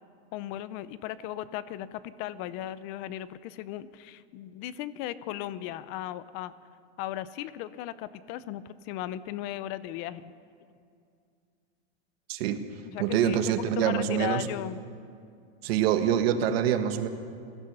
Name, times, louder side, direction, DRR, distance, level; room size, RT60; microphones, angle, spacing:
voice 1, 0.3-6.5 7.0-10.3 12.8-14.8, left 13 dB, 40° left, 16 dB, 0.7 m, -36 dB
voice 2, 12.3-12.7 13.0-14.5 15.6-17.1, right 9 dB, 65° right, 8 dB, 1.6 m, -25 dB
23.5 x 16.0 x 6.9 m, 2.3 s
supercardioid pair, 160°, 33 cm